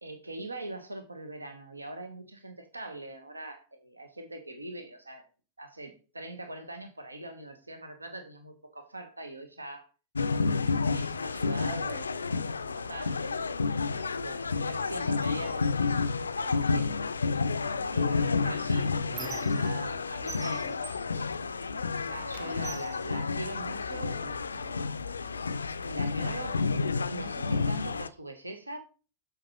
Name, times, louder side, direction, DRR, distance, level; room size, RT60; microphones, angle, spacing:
voice 1, 0.0-5.3 5.6-9.9 10.9-13.5 13.9-17.0 17.9-20.8 22.0-24.9 25.8-28.8, right 1 dB, 80° right, 0.9 m, -42 dB
sound 1, 10.1-28.1, left 4 dB, 75° left, 0.3 m, -30 dB
Squeak, 19.0-20.0 20.3-21.9 22.3-24.0 24.8-24.9 25.3-26.3, right 7 dB, 25° right, 0.6 m, -46 dB
7.4 x 5.0 x 2.9 m
figure-of-eight pair, 90°, 0 cm